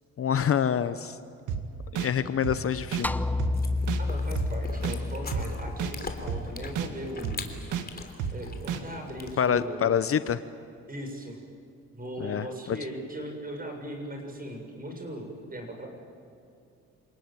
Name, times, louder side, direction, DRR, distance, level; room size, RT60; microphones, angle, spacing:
voice 1, 0.2-1.2 1.9-3.2 9.4-10.4 12.2-12.8, left 8 dB, 50° left, 13 dB, 0.9 m, -26 dB
sound 1, 1.5-1.6 2.0-2.1 2.4-2.6 2.9-3.0 3.4-3.5 3.9-4.0 4.4-4.5 4.8-5.0 5.3-5.4 5.8-5.9 6.3-6.4 6.7-6.9 7.2-7.4 7.7-7.8 8.2-8.3 8.7-8.8, right 8 dB, 85° right, 2.0 m, -30 dB
sound 2, 3.0-7.5, left 2 dB, 5° left, 0.7 m, -31 dB
Chewing mastication, 3.5-9.7, left 4 dB, 30° left, 3.3 m, -42 dB
voice 2, 4.0-7.5 8.3-9.8 10.9-11.4 11.9-15.9, right 1 dB, 30° right, 3 dB, 7.0 m, -38 dB
28.0 x 19.5 x 9.1 m, 2.6 s
cardioid pair, 90°, 30 cm